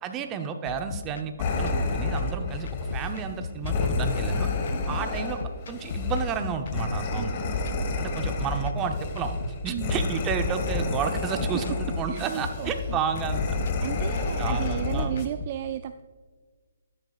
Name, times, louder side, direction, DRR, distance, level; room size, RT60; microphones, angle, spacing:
voice 1, 0.0-4.5 4.9-7.4 8.0-11.6 12.0-13.6 14.4-15.1, right 6 dB, 20° right, 7 dB, 0.7 m, -31 dB
sound 1, 0.7-15.5, left 6 dB, 65° left, 0.4 m, -39 dB
sound 2, 1.4-15.3, left 3 dB, 40° left, 1.3 m, -29 dB
voice 2, 7.1-7.8 9.7-10.0 12.1-13.0 13.8-16.0, right 11 dB, 40° right, 10 dB, 0.3 m, -34 dB
13.0 x 9.9 x 2.4 m, 1.4 s
hypercardioid pair, 150°, 0 cm